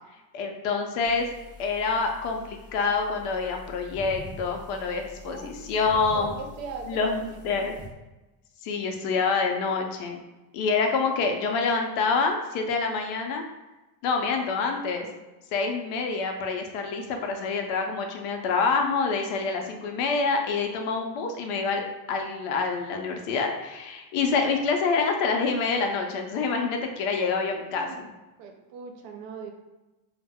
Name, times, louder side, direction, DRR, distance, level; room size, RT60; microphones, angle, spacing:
voice 1, 0.3-1.3 1.6-6.3 6.9-7.8 8.6-10.2 10.5-13.4 14.0-15.1 15.5-21.8 22.1-28.1, left 4 dB, 75° left, 3 dB, 0.6 m, -27 dB
sound 1, 1.0-7.9, left 1 dB, 20° right, 0.3 m, -45 dB
voice 2, 5.2-7.4 19.6-19.7 24.2-24.4 27.6-28.0 28.4-29.5, right 5 dB, 85° right, 3 dB, 0.7 m, -41 dB
2.1 x 2.1 x 3.4 m, 1.1 s
cardioid pair, 140°, 49 cm